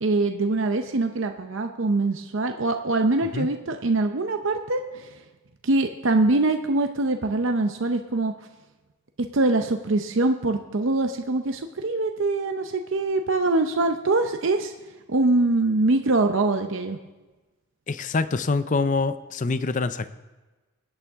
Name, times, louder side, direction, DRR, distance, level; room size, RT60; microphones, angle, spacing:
voice 1, 0.0-5.1 5.6-8.3 9.3-14.7 15.1-17.0, right 2 dB, 65° right, 6 dB, 0.7 m, -23 dB
voice 2, 17.9-20.1, left 3 dB, 35° left, 12 dB, 0.5 m, -25 dB
24.0 x 8.9 x 3.6 m, 1.2 s
head